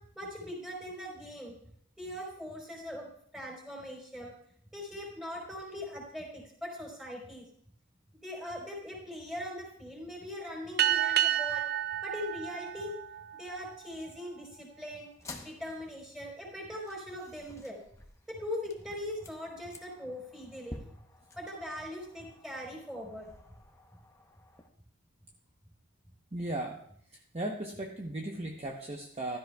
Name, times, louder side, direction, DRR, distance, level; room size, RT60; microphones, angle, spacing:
voice 1, 0.2-1.6 2.0-4.3 4.7-7.5 8.2-11.6 12.0-12.9 13.3-15.1 15.4-17.8 18.3-20.8 21.3-23.3, left 1 dB, 5° right, -2 dB, 3.9 m, -41 dB
sound 1, 10.8-13.7, right 12 dB, 45° right, 0.4 m, -30 dB
sound 2, 15.1-24.7, left 2 dB, 15° left, 0.8 m, -52 dB
voice 2, 26.3-26.8 27.1-29.4, right 1 dB, 30° right, 1 dB, 0.8 m, -37 dB
15.0 x 13.0 x 2.3 m, 0.65 s
head